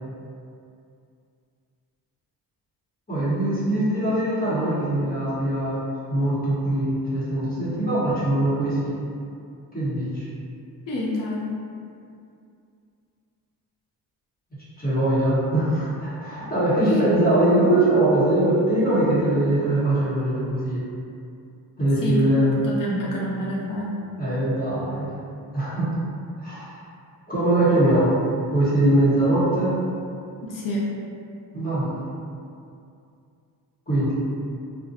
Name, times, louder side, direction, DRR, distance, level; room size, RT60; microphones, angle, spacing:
voice 1, 3.1-5.8 6.1-8.9 9.7-10.3 14.8-20.9 21.8-22.6 24.2-25.1 25.5-25.9 26.4-26.8 27.3-28.1 28.5-29.7 31.5-32.0 33.9-34.2, right 1 dB, 20° left, -11 dB, 1.1 m, -22 dB
voice 2, 10.9-11.6 16.8-17.0 22.0-22.2 22.6-24.0 30.4-30.9, left 1 dB, 55° left, -4 dB, 0.6 m, -27 dB
2.4 x 2.1 x 2.7 m, 2.5 s
cardioid pair, 70°, 40 cm